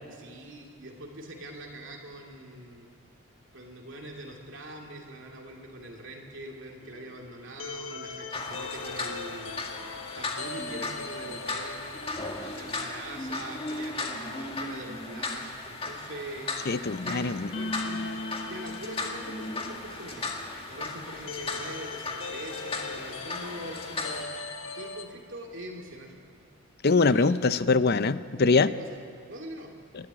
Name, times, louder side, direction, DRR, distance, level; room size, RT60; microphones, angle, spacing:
voice 1, 0.1-2.9 3.5-9.7 10.1-11.9 12.5-16.5 17.0-18.1 18.5-20.3 20.7-24.3 24.7-26.1 27.1-27.4 28.6-29.0 29.3-29.7, right 1 dB, 60° right, 0 dB, 2.8 m, -43 dB
sound 1, 6.8-13.5 13.8-13.9 17.5-25.1, left 3 dB, 65° left, 1.4 m, -40 dB
sound 2, 8.3-24.2, left 2 dB, 25° left, 1.9 m, -36 dB
voice 2, 16.7-17.5 26.8-28.7, left 4 dB, 50° left, 14 dB, 0.6 m, -23 dB
29.0 x 12.5 x 9.8 m, 2.2 s
head